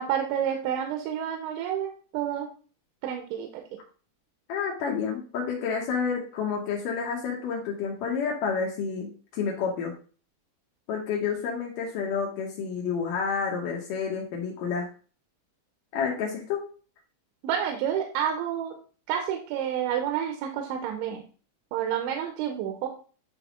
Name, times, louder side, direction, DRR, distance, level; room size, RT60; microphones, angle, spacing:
voice 1, 0.0-2.5 3.0-3.8 17.4-18.8 19.1-21.2 21.7-22.9, right 9 dB, 85° right, 4 dB, 3.1 m, -29 dB
voice 2, 4.5-9.9 10.9-14.9 15.9-16.6, left 6 dB, 90° left, -1 dB, 1.9 m, -29 dB
9.6 x 3.6 x 3.6 m, 0.39 s
omnidirectional pair, 5.3 m